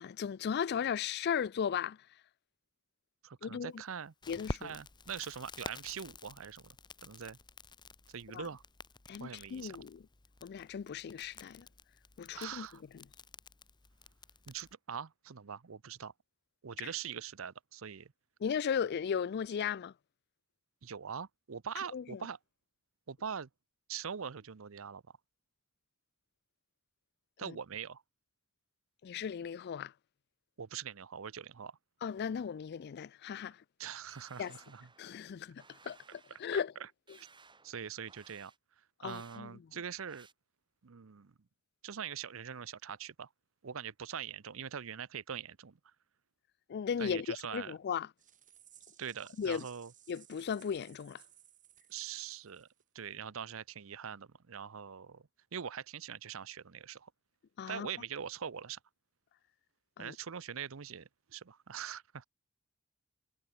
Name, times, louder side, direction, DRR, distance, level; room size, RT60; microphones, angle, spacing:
voice 1, 0.0-2.0 3.4-3.8 4.3-4.7 8.3-8.5 9.1-10.0 10.4-11.7 12.2-12.7 12.9-13.0 16.8-16.9 18.4-19.9 21.9-22.2 27.4-27.6 29.0-29.9 32.0-33.6 34.4-34.5 35.0-36.7 39.0-39.6 46.7-48.1 49.4-49.6 50.1-51.2 57.6-57.9 60.0-60.2, left 7 dB, 50° left, 0.3 m, -36 dB
voice 2, 3.2-4.1 4.6-6.8 7.0-7.4 8.1-8.6 9.2-9.8 12.3-12.8 14.5-16.1 16.6-18.1 20.8-22.4 23.1-23.5 23.9-25.0 27.4-28.0 30.6-31.8 33.8-34.9 36.5-36.9 37.2-37.3 37.6-38.5 39.0-40.3 40.8-41.3 41.8-43.3 43.6-45.8 47.0-47.8 49.0-49.9 51.9-52.7 52.9-55.2 55.5-57.1 57.7-58.8 60.0-62.2, right 7 dB, 70° right, 0.7 m, -43 dB
Crackle, 4.2-14.7, left 3 dB, 20° left, 0.8 m, -49 dB
sound 1, 34.1-35.2 35.6-36.5 37.1-37.7 38.1-38.6 39.1-39.5 40.1-40.3, right 4 dB, 20° right, 7.1 m, -60 dB
sound 2, 48.2-53.0, right 11 dB, 40° right, 3.4 m, -61 dB
head